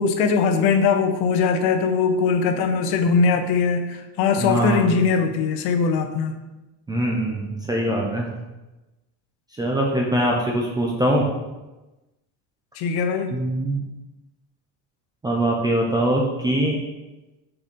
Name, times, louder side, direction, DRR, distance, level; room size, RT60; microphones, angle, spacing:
voice 1, 0.0-6.4 7.9-8.0 12.8-13.3, left 5 dB, 55° left, 8 dB, 0.8 m, -21 dB
voice 2, 4.4-4.9 6.9-8.3 9.6-11.2 13.3-13.8 15.2-16.8, right 1 dB, 10° right, -2 dB, 0.4 m, -22 dB
5.8 x 4.2 x 5.1 m, 1.1 s
cardioid pair, 160°, 47 cm